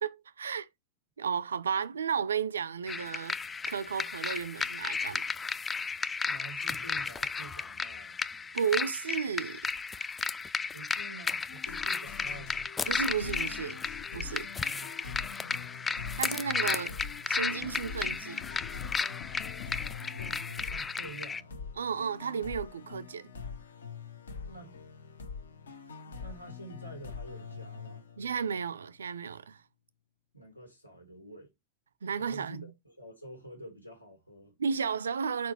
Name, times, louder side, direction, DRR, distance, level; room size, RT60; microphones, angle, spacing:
voice 1, 0.0-0.7 1.2-3.4 3.7-5.3 8.5-9.6 12.9-13.8 14.1-14.5 16.2-16.9 17.3-18.4 21.8-23.3 28.2-29.6 32.0-32.7 34.6-35.5, right 6 dB, 70° right, 0.4 m, -33 dB
sound 1, 2.9-21.4, left 5 dB, 15° left, 0.3 m, -34 dB
voice 2, 6.2-8.2 10.7-12.7 14.6-15.6 20.2-21.6 24.5-24.8 26.0-28.0 30.3-31.5 32.2-34.5, right 2 dB, 85° left, 2.1 m, -49 dB
sound 2, 11.5-20.5, left 9 dB, 45° left, 0.6 m, -47 dB
sound 3, 13.2-28.6, left 5 dB, 70° left, 1.1 m, -44 dB
4.6 x 4.3 x 4.7 m
figure-of-eight pair, 90°, 0 cm